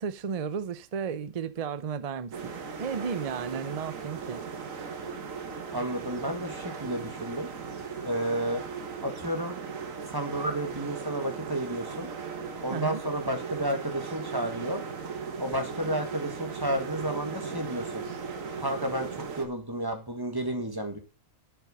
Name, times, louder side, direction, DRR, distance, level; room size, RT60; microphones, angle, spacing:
voice 1, 0.0-2.5 2.8-4.4 12.7-13.0, right 6 dB, 40° right, 0.5 m, -33 dB
sound 1, 2.3-19.5, right 5 dB, 70° right, 1.7 m, -37 dB
voice 2, 5.7-7.5 8.0-8.6 9.0-9.6 10.1-12.1 12.6-14.8 15.4-18.0 18.6-21.0, right 1 dB, 15° right, 1.9 m, -31 dB
8.3 x 6.9 x 6.5 m
omnidirectional pair, 1.5 m